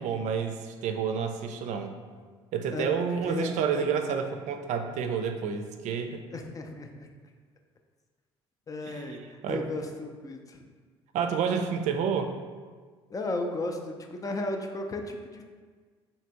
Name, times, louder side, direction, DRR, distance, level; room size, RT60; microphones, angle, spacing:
voice 1, 0.0-1.9 2.5-6.2 8.8-9.6 11.1-12.3, right 6 dB, 55° right, 6 dB, 0.5 m, -29 dB
voice 2, 3.2-4.2 6.3-7.1 8.7-10.6 13.1-15.4, left 2 dB, 25° left, 4 dB, 0.5 m, -35 dB
3.3 x 2.9 x 4.2 m, 1.5 s
hypercardioid pair, 55°, 14 cm